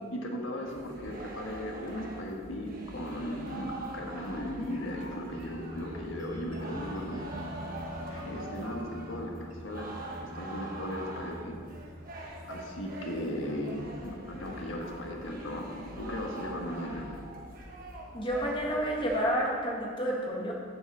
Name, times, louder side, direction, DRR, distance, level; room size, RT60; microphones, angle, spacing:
voice 1, 0.1-7.2 8.1-11.6 12.5-17.2, left 1 dB, 70° left, 0 dB, 1.5 m, -37 dB
sound 1, 0.7-19.2, right 1 dB, 45° right, 1.3 m, -44 dB
sound 2, 5.3-15.4, equal, 20° right, 1.2 m, -45 dB
voice 2, 18.1-20.5, equal, 25° left, -2 dB, 1.7 m, -30 dB
7.8 x 7.3 x 6.2 m, 2.1 s
head